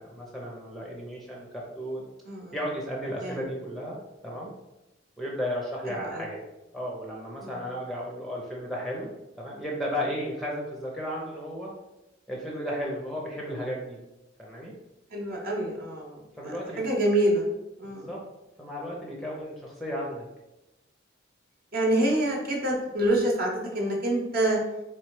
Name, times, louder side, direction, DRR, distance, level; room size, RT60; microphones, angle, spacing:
voice 1, 0.0-2.0 2.5-4.0 4.2-4.5 5.2-6.4 6.7-11.7 12.3-14.0 14.4-14.7 16.3-16.8 17.8-18.2 18.6-20.2, equal, ahead, -3 dB, 0.6 m, -34 dB
voice 2, 2.2-2.6 3.2-3.4 5.9-6.2 7.4-7.6 15.1-17.5 17.8-18.1 21.7-24.6, right 1 dB, 50° right, -2 dB, 1.0 m, -27 dB
3.6 x 3.1 x 4.7 m, 0.99 s
head